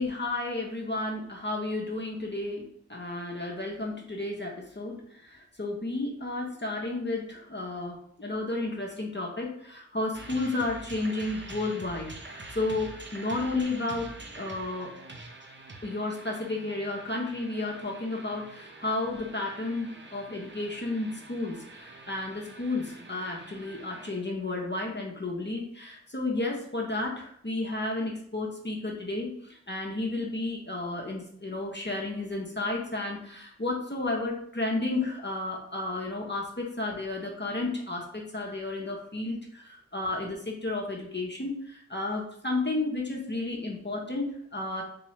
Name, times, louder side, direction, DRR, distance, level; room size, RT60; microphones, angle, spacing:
voice 1, 0.0-14.9 15.8-44.8, left 2 dB, 40° left, -1 dB, 0.9 m, -32 dB
sound 1, 10.1-24.5, right 2 dB, 40° right, 0.7 m, -46 dB
3.8 x 3.0 x 3.1 m, 0.64 s
wide cardioid pair, 40°, 29 cm